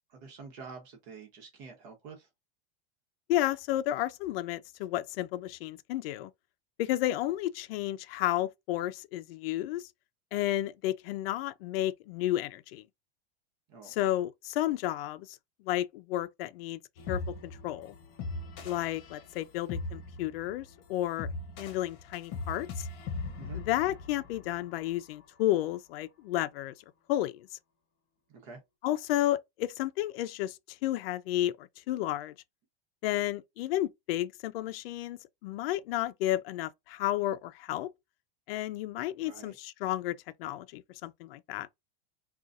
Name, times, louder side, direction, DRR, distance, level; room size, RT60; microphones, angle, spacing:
voice 1, 0.1-2.3 13.7-13.9 23.4-23.6 28.3-28.6 39.2-39.5, right 5 dB, 45° right, 1.1 m, -47 dB
voice 2, 3.3-6.3 6.8-9.8 10.3-12.8 13.8-15.4 15.6-16.8 17.1-17.9 18.6-21.3 21.6-22.7 23.5-26.7 27.1-27.5 28.8-30.6 30.8-32.3 33.0-37.9 38.5-41.7, left 14 dB, 65° left, 0.5 m, -32 dB
sound 1, 17.0-25.1, left 3 dB, 45° left, 1.0 m, -40 dB
3.8 x 2.4 x 2.6 m
supercardioid pair, 165°, 32 cm